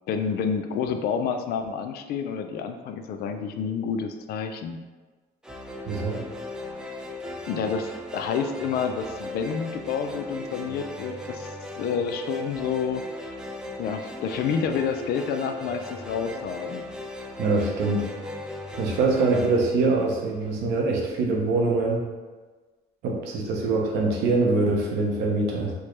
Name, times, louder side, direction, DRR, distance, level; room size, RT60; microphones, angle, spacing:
voice 1, 0.1-4.8 7.5-11.5 11.8-13.0 13.8-16.8, left 6 dB, 65° left, 6 dB, 0.4 m, -29 dB
sound 1, 5.4-20.7, left 1 dB, 5° right, 0.4 m, -37 dB
voice 2, 5.9-6.2 17.4-18.1 18.8-22.0 23.0-25.7, right 3 dB, 85° right, -1 dB, 0.8 m, -24 dB
4.4 x 2.2 x 3.1 m, 1.3 s
cardioid pair, 110°, 17 cm